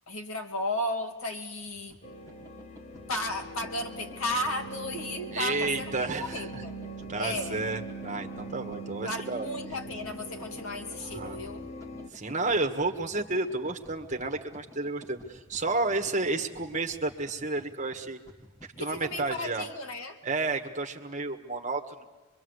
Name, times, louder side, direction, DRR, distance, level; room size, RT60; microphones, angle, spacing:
voice 1, 0.1-2.0 3.1-6.7 7.2-7.6 9.0-11.7 18.8-20.2, left 1 dB, 80° left, 3 dB, 2.4 m, -34 dB
sound 1, 1.6-19.4, equal, 15° left, 2.8 m, -52 dB
sound 2, 2.0-12.1, right 1 dB, 30° left, 1.0 m, -42 dB
voice 2, 5.3-6.6 7.1-9.5 11.1-11.4 12.1-18.2 18.8-19.7 20.2-22.0, right 3 dB, 35° right, 3 dB, 1.6 m, -31 dB
25.5 x 23.0 x 8.1 m, 1.3 s
head